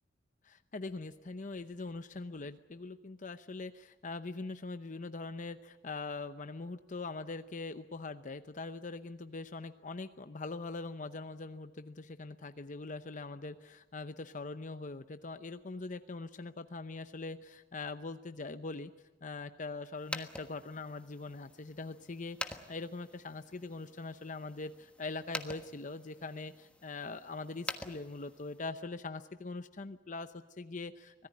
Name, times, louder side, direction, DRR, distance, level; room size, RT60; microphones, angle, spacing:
voice 1, 0.4-18.9 19.2-31.3, left 3 dB, 45° left, 10 dB, 0.8 m, -42 dB
sound 1, 19.9-28.7, left 2 dB, 5° left, 1.3 m, -47 dB
25.0 x 18.0 x 9.6 m, 1.1 s
head